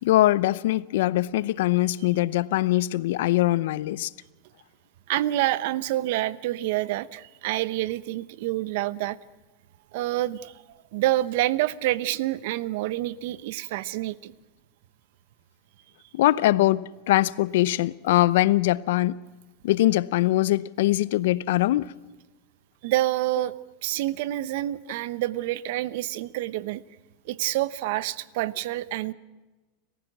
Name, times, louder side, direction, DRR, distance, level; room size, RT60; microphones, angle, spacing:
voice 1, 0.0-4.1 16.1-19.2 19.6-21.9, left 16 dB, 75° left, 0.7 m, -22 dB
voice 2, 5.1-9.2 9.9-10.5 10.9-14.3 22.8-23.5 23.8-26.8 27.3-29.1, right 15 dB, 65° right, 0.9 m, -27 dB
30.0 x 15.0 x 6.1 m
supercardioid pair, 130°, 0 cm